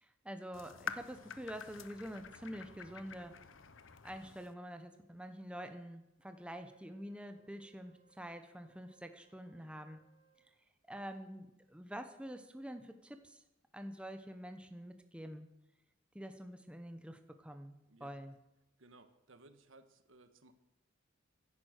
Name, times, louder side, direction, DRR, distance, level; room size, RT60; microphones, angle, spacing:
voice 1, 0.0-3.4 4.0-10.0 10.9-13.4 13.7-15.5 16.1-18.4, equal, 5° right, 7 dB, 0.9 m, -47 dB
sound 1, 0.5-4.5, left 6 dB, 70° left, 0.9 m, -48 dB
Wind instrument woodwind instrument, 6.2-10.6, right 9 dB, 25° right, 2.4 m, -71 dB
voice 2, 17.9-18.2 18.8-20.5, right 2 dB, 75° right, 9 dB, 1.4 m, -61 dB
16.0 x 11.0 x 6.6 m, 0.91 s
head